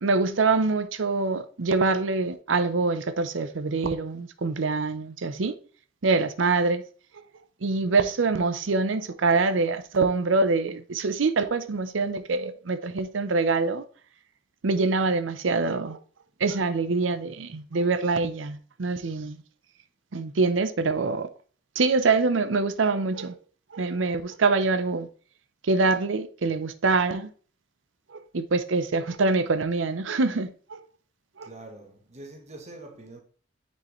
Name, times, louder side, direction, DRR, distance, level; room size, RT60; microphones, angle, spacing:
voice 1, 0.0-5.5 6.0-6.8 7.6-13.8 14.6-16.0 16.4-19.4 20.1-21.3 21.8-23.3 23.7-25.1 25.6-27.3 28.3-30.8 31.4-31.5, right 3 dB, 75° right, 0.6 m, -25 dB
voice 2, 31.4-33.2, right 2 dB, 35° right, 1.2 m, -44 dB
9.6 x 4.4 x 3.1 m
head